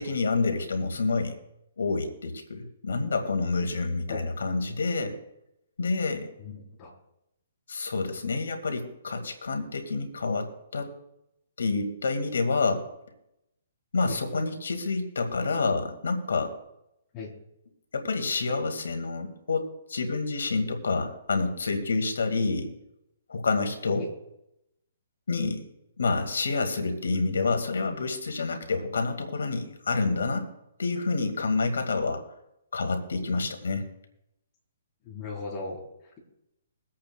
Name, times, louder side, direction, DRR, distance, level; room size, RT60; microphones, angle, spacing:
voice 1, 0.0-1.4 1.8-5.2 5.8-6.3 7.7-10.9 11.6-12.9 13.9-16.5 17.9-22.7 23.3-24.1 25.3-25.6 26.0-30.5 30.8-32.2 32.7-33.8, left 3 dB, 90° left, 6 dB, 1.8 m, -28 dB
voice 2, 6.4-6.9 14.1-14.2 17.1-17.3 24.0-24.1 35.1-35.8, left 3 dB, 25° left, -2 dB, 3.3 m, -37 dB
23.0 x 8.5 x 2.2 m, 0.83 s
hypercardioid pair, 150°, 0 cm